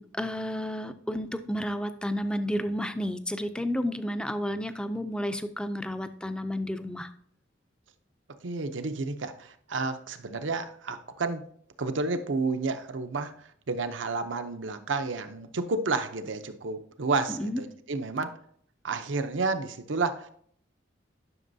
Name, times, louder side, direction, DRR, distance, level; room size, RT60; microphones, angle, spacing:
voice 1, 0.0-7.1 17.4-17.6, equal, 5° left, 10 dB, 0.4 m, -31 dB
voice 2, 8.4-11.4 11.8-18.4 18.8-20.3, right 3 dB, 85° right, 9 dB, 0.7 m, -31 dB
11.0 x 6.0 x 2.7 m, 0.63 s
head